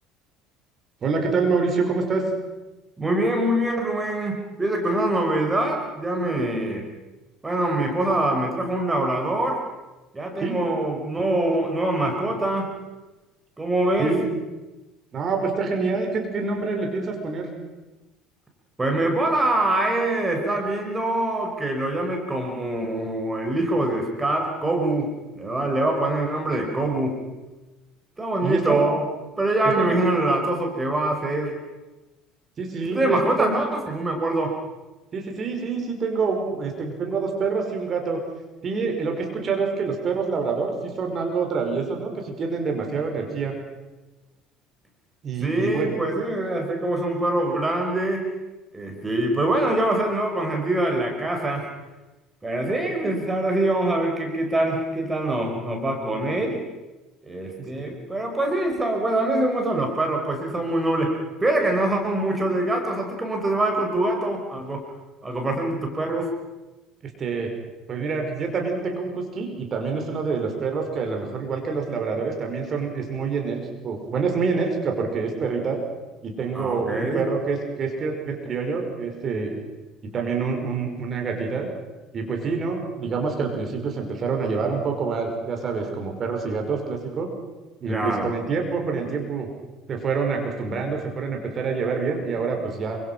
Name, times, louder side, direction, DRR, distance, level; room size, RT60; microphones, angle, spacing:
voice 1, 1.0-2.3 10.4-10.6 14.0-14.2 15.1-17.5 28.4-28.8 29.8-30.0 32.6-33.5 35.1-38.2 38.6-43.5 45.2-45.9 57.7-57.8 67.2-67.5 67.9-75.8 76.2-79.6 80.1-81.7 82.1-87.3 87.8-89.5 89.9-93.0, right 4 dB, 40° right, 3 dB, 5.6 m, -26 dB
voice 2, 3.0-6.8 7.4-9.6 10.1-12.7 13.6-14.2 18.8-27.2 28.2-29.0 29.4-31.6 32.9-34.6 45.4-48.3 48.7-51.7 52.4-56.6 57.2-64.9 65.2-66.3 76.5-77.2 87.9-88.3, right 1 dB, 15° right, 2 dB, 5.4 m, -24 dB
28.0 x 25.0 x 5.9 m, 1.1 s
figure-of-eight pair, 60°, 0 cm